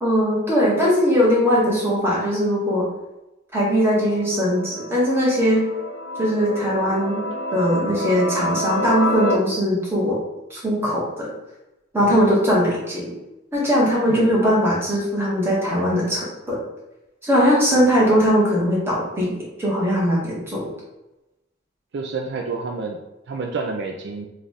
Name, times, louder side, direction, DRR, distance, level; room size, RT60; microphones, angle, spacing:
voice 1, 0.0-2.9 3.5-5.6 6.2-7.2 7.5-10.2 10.5-11.3 11.9-13.1 13.5-16.6 17.2-19.3 19.6-20.7, equal, 10° right, -6 dB, 1.3 m, -20 dB
sound 1, 3.8-9.3, left 1 dB, 85° left, 0.7 m, -28 dB
voice 2, 21.9-23.0 23.3-24.3, right 4 dB, 60° right, 3 dB, 0.3 m, -29 dB
3.3 x 2.4 x 4.0 m, 0.96 s
head